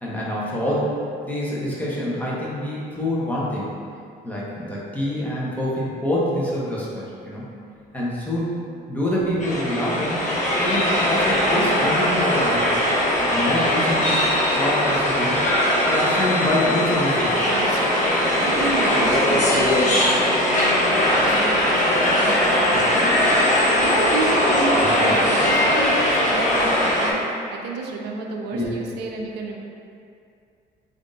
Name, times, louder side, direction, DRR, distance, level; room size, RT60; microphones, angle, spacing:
voice 1, 0.0-0.9 1.2-3.7 4.2-7.5 7.9-8.5 8.9-10.3 10.6-12.8 13.2-14.2 14.5-15.5 15.9-17.4 24.8-25.1 28.5-28.7, left 1 dB, 10° left, -7 dB, 0.9 m, -26 dB
sound 1, 9.4-27.1, left 1 dB, 45° left, 0.8 m, -20 dB
voice 2, 17.4-29.6, right 3 dB, 80° right, 1 dB, 0.5 m, -31 dB
3.4 x 2.6 x 3.9 m, 2.4 s
cardioid pair, 110°, 17 cm